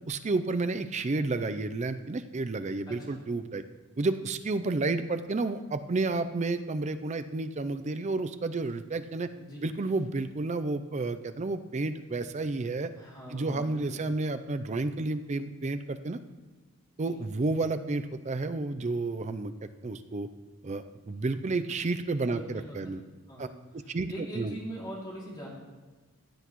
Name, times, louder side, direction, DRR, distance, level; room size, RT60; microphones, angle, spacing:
voice 1, 0.1-3.6 4.0-9.3 9.6-12.9 13.3-16.2 17.0-20.3 20.6-23.0 23.4-23.5 23.7-24.5, right 3 dB, 30° right, 10 dB, 0.4 m, -31 dB
voice 2, 2.9-3.2 9.4-9.7 13.0-14.0 17.0-17.2 22.3-22.8 23.3-25.5, right 1 dB, 20° left, -5 dB, 2.6 m, -42 dB
15.5 x 8.1 x 3.0 m, 1.3 s
head